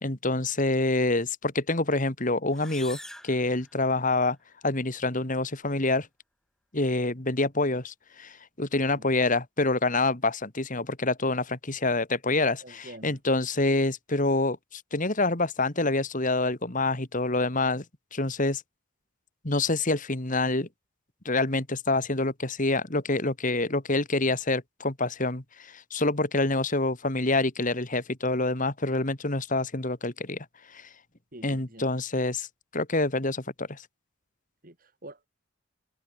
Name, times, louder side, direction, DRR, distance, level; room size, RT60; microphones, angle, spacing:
voice 1, 0.0-3.0 3.2-4.4 4.6-6.1 6.7-17.8 18.1-18.6 19.4-20.7 21.2-30.5 30.7-30.9 31.4-32.5 32.7-33.8, left 2 dB, 40° left, 2.4 m, -27 dB
sound 1, 2.5-4.3, left 1 dB, ahead, 5.5 m, -46 dB
voice 2, 12.6-13.2 31.3-31.9 34.6-35.3, right 1 dB, 40° right, 5.5 m, -46 dB
head